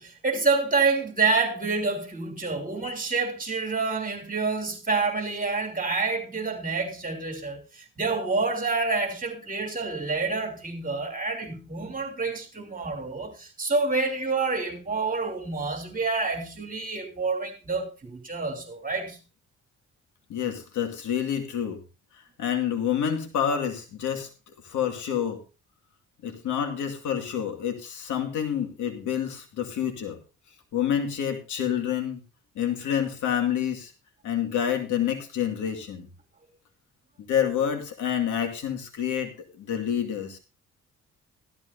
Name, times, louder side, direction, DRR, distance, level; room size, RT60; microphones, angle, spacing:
voice 1, 0.0-19.2, right 4 dB, 30° right, 3.0 m, -28 dB
voice 2, 20.3-21.8 22.1-25.4 26.2-30.2 30.7-32.2 32.6-33.9 34.2-36.1 37.3-40.4, left 9 dB, 75° left, 2.3 m, -28 dB
14.5 x 13.5 x 2.7 m
cardioid pair, 90°, 30 cm